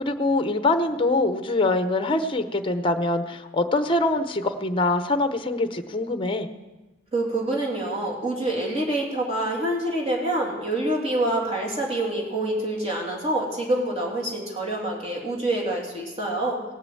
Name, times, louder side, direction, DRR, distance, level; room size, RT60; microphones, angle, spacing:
voice 1, 0.0-6.5, left 2 dB, 25° left, 9 dB, 0.8 m, -24 dB
voice 2, 7.1-16.7, right 1 dB, 30° right, -2 dB, 2.9 m, -26 dB
18.0 x 6.7 x 7.7 m, 1.1 s
head